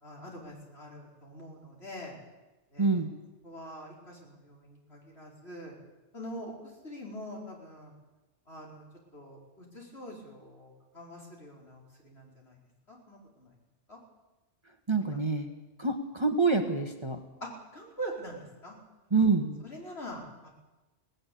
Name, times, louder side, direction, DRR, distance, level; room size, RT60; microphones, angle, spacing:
voice 1, 0.0-2.2 2.7-2.9 3.4-5.7 6.1-6.5 6.8-7.9 8.5-8.8 9.1-12.5 12.9-13.5 13.9-14.0 15.0-15.2 17.4-18.7 19.6-20.5, equal, 60° left, -2 dB, 4.9 m, -44 dB
voice 2, 2.8-3.1 14.9-15.5 15.8-17.2 19.1-19.6, right 4 dB, 25° right, 5 dB, 1.4 m, -26 dB
18.0 x 17.0 x 8.5 m, 1.1 s
omnidirectional pair, 1.2 m